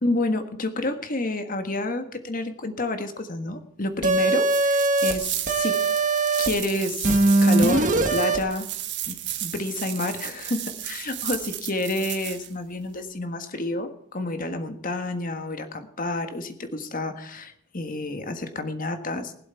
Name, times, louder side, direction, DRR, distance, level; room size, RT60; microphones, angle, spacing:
voice 1, 0.0-5.8 6.4-8.7 9.1-19.3, left 2 dB, 35° left, 8 dB, 1.5 m, -29 dB
sound 1, 4.0-5.1 5.5-6.5 7.0-8.4, right 2 dB, 35° right, 1.7 m, -21 dB
sound 2, 4.4-12.5, right 12 dB, 50° right, 1.5 m, -34 dB
20.5 x 7.8 x 4.5 m, 0.70 s
head